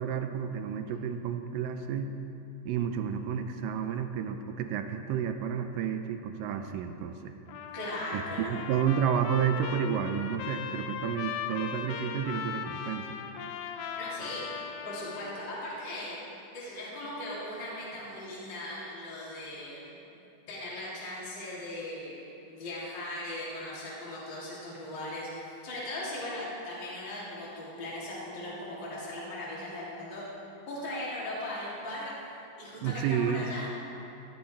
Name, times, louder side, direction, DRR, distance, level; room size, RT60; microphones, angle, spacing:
voice 1, 0.0-2.1 2.7-7.3 8.1-13.2 32.8-33.4, right 8 dB, 80° right, 7 dB, 2.1 m, -31 dB
Trumpet, 7.5-15.5, left 8 dB, 80° left, 1.8 m, -39 dB
voice 2, 7.7-8.5 14.0-14.5 14.8-16.2 16.5-20.0 20.5-32.1 32.6-33.7, left 1 dB, 30° left, -8 dB, 3.3 m, -38 dB
16.0 x 13.5 x 3.4 m, 2.8 s
omnidirectional pair, 4.2 m